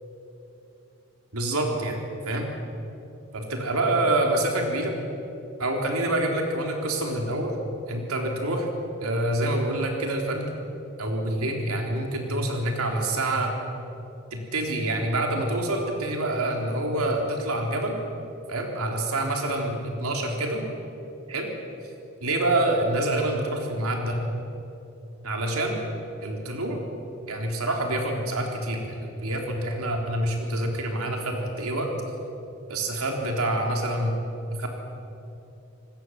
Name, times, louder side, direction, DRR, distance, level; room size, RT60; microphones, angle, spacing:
voice 1, 1.3-2.5 3.3-4.9 5.6-7.6 7.9-8.7 9.0-10.5 11.0-13.5 14.3-18.0 18.5-20.6 21.3-21.5 22.2-24.2 25.2-25.8 26.2-26.8 27.3-31.9 32.7-34.2 34.6-34.7, right 1 dB, 90° right, 1 dB, 4.0 m, -27 dB
26.0 x 19.0 x 7.7 m, 2.8 s
head